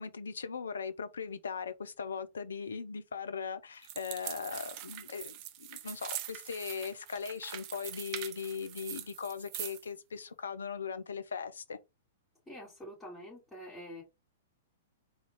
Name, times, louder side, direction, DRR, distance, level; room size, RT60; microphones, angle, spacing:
voice 1, 0.0-5.4 5.7-11.8, left 6 dB, 70° left, 0.6 m, -39 dB
sound 1, 3.8-9.9, right 12 dB, 40° right, 0.5 m, -43 dB
voice 2, 12.5-14.0, equal, 10° left, 2.6 m, -46 dB
4.1 x 2.3 x 4.6 m
figure-of-eight pair, 110°, 0 cm